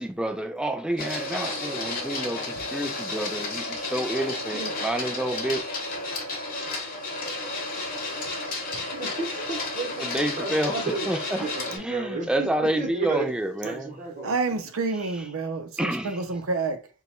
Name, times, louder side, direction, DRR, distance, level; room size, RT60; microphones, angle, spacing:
voice 1, 0.0-5.6 10.0-14.0 15.8-16.1, right 1 dB, 5° right, 0.3 m, -29 dB
Printer, 1.0-11.8, left 2 dB, 40° left, 0.8 m, -32 dB
voice 2, 4.5-4.9 8.7-8.8 14.2-16.9, right 3 dB, 65° right, 0.6 m, -29 dB
voice 3, 8.7-11.1 11.4-13.3 13.6-14.3, right 4 dB, 35° right, 0.9 m, -32 dB
2.9 x 2.3 x 4.2 m
head